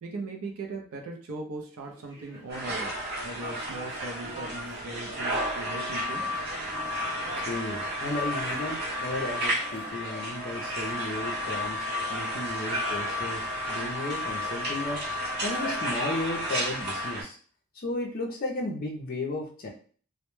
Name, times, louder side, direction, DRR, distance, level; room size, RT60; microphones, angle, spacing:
voice 1, 0.0-3.0 3.2-6.2, right 2 dB, 70° right, 2 dB, 0.4 m, -39 dB
sound 1, 1.7-15.4, right 1 dB, 15° right, 0.5 m, -49 dB
sound 2, 2.5-17.2, equal, 50° right, 0.9 m, -32 dB
voice 2, 7.4-15.0 15.4-17.4 17.7-19.7, left 2 dB, 40° left, 0 dB, 0.4 m, -34 dB
2.1 x 2.1 x 3.0 m, 0.44 s
head